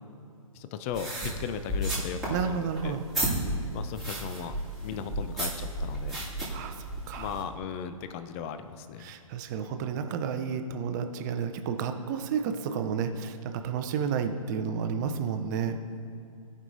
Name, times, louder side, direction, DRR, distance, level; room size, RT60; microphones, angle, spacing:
voice 1, 0.5-3.0 3.4-6.2 7.2-9.1, left 7 dB, 25° left, 10 dB, 0.3 m, -37 dB
sound 1, 0.9-7.4, right 1 dB, ahead, 2.0 m, -33 dB
voice 2, 2.3-3.0 6.5-7.3 9.0-15.8, right 6 dB, 30° right, 7 dB, 0.6 m, -31 dB
16.5 x 5.5 x 2.6 m, 2.6 s
figure-of-eight pair, 125°, 18 cm